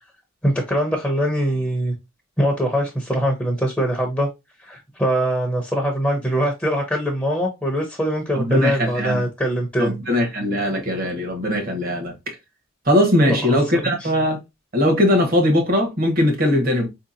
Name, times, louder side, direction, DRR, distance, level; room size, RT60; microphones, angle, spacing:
voice 1, 0.4-1.9 2.4-4.3 4.6-10.0 13.3-13.6 13.8-14.1, equal, 10° left, 0.6 m, -22 dB
voice 2, 8.3-9.2 9.8-12.4 12.9-14.4 14.7-16.9, left 1 dB, 45° right, 0.9 m, -20 dB
4.4 x 2.8 x 2.5 m
head